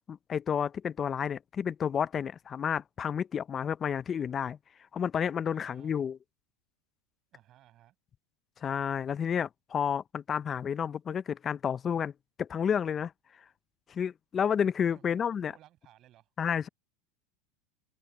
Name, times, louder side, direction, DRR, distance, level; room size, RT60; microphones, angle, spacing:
voice 1, 0.0-4.6 4.9-6.2 8.6-12.1 12.4-13.1 13.9-15.5 16.4-16.7, left 7 dB, 30° left, 0.6 m, -30 dB
voice 2, 5.5-6.1 7.3-7.9 14.6-16.3, right 13 dB, 45° right, 6.3 m, -60 dB
hypercardioid pair, 105°, 0 cm